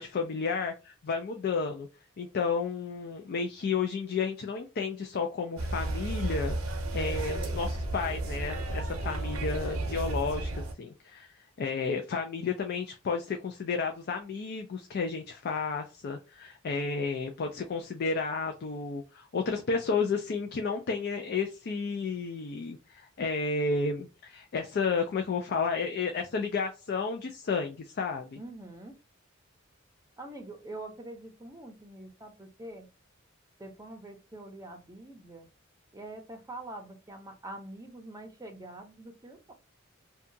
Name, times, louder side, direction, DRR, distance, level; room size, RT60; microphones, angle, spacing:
voice 1, 0.0-1.9 2.2-6.6 6.9-11.3 11.6-28.4, left 4 dB, 50° left, 5 dB, 0.4 m, -32 dB
sound 1, 5.6-10.7, right 1 dB, 85° right, 0.6 m, -33 dB
voice 2, 28.3-28.9 30.2-32.9 33.6-35.5 35.9-39.5, right 2 dB, 15° right, 3 dB, 0.6 m, -45 dB
2.7 x 2.3 x 2.6 m, 0.30 s
head